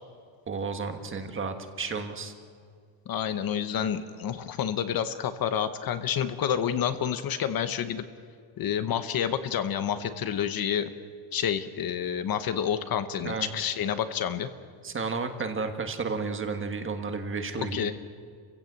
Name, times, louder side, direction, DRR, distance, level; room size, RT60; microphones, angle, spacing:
voice 1, 0.5-2.3 13.2-13.5 14.8-17.9, right 4 dB, 25° right, 6 dB, 1.5 m, -32 dB
voice 2, 3.1-8.0 8.6-10.9 11.3-14.5 17.5-18.0, left 9 dB, 45° left, 10 dB, 1.0 m, -29 dB
29.5 x 16.0 x 8.0 m, 2.1 s
cardioid pair, 175°, 48 cm